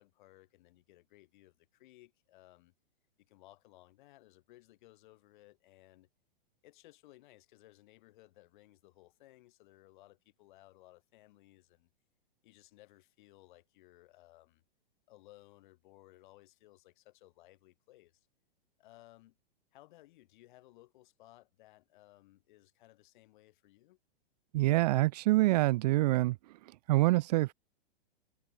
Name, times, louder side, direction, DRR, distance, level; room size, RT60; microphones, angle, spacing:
voice 1, 0.0-2.7 3.2-6.1 6.6-11.9 12.4-14.6 15.1-18.3 18.8-19.4 19.7-24.0, left 17 dB, 55° left, 7.6 m, -60 dB
voice 2, 24.5-26.4 26.9-27.5, right 18 dB, 45° right, 0.5 m, -26 dB
hypercardioid pair, 135°, 29 cm